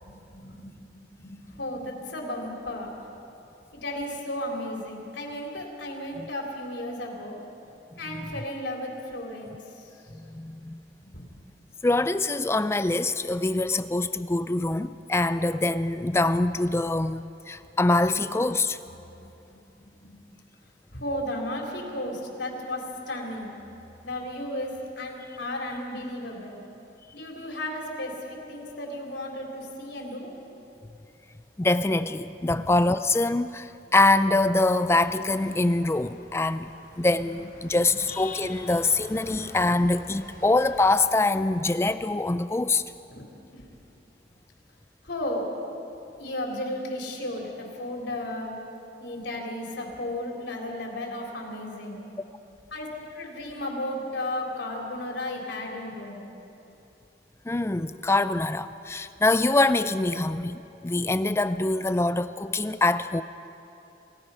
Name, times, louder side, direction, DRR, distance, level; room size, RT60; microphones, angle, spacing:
voice 1, 0.0-2.9 3.8-7.4 8.0-9.8 10.4-10.5 11.0-11.3 19.2-19.3 19.8-20.4 20.9-23.5 24.0-24.7 25.0-26.6 27.1-30.3 32.5-32.6 37.6-37.8 43.1-43.2 43.5-43.6 45.0-45.5 46.2-48.6 49.0-52.0 52.7-52.9 53.1-56.3, left 1 dB, 75° left, -1 dB, 3.8 m, -34 dB
voice 2, 10.1-10.8 11.8-18.8 31.6-36.7 37.0-42.8 57.5-63.2, left 2 dB, 15° left, 12 dB, 0.4 m, -24 dB
sound 1, 34.6-41.1, left 3 dB, 55° left, 3.1 m, -46 dB
27.5 x 17.0 x 5.7 m, 2.9 s
head